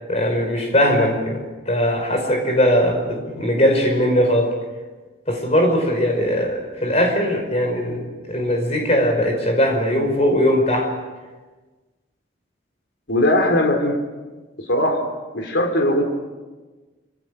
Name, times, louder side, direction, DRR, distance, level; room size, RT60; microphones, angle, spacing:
voice 1, 0.1-4.5 5.3-10.9, equal, 35° left, 4 dB, 5.3 m, -20 dB
voice 2, 13.1-14.0 14.6-15.1 15.3-16.0, left 1 dB, 65° left, 4 dB, 4.0 m, -19 dB
27.0 x 26.5 x 6.7 m, 1.3 s
head